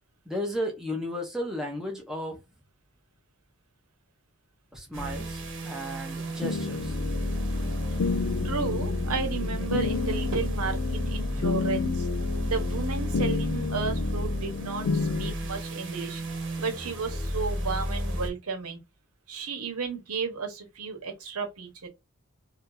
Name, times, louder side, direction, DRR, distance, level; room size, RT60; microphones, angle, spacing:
voice 1, 0.3-2.4 4.7-7.0, equal, ahead, 0.8 m, -34 dB
sound 1, 4.9-18.3, equal, 55° right, 1.1 m, -32 dB
sound 2, 6.4-15.3, left 4 dB, 75° left, 0.4 m, -31 dB
voice 2, 8.4-12.1 12.4-16.2 16.6-18.8 19.3-21.9, right 5 dB, 85° right, 1.0 m, -33 dB
2.7 x 2.5 x 3.8 m
head